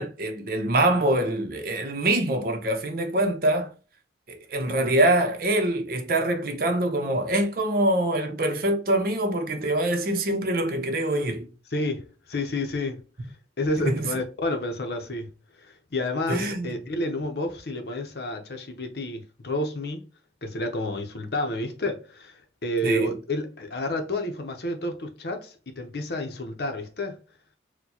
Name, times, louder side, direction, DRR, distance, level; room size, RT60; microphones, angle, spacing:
voice 1, 0.0-3.7 4.3-11.5 13.8-14.1 16.3-16.7 22.8-23.2, right 1 dB, 50° right, 0.7 m, -24 dB
voice 2, 11.7-13.0 13.6-15.3 15.6-20.1 20.4-27.2, left 1 dB, 60° left, 0.7 m, -30 dB
4.3 x 2.2 x 2.8 m
head